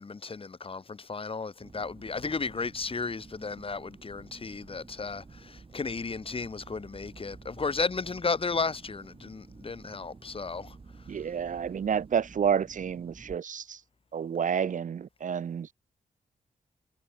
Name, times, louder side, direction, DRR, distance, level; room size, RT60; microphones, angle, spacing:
voice 1, 0.0-10.8, left 4 dB, 40° left, 2.8 m, -34 dB
sound 1, 1.6-13.4, right 4 dB, 40° right, 3.6 m, -51 dB
voice 2, 11.1-13.8 14.1-15.7, right 7 dB, 65° right, 1.3 m, -29 dB
cardioid pair, 65°, 14 cm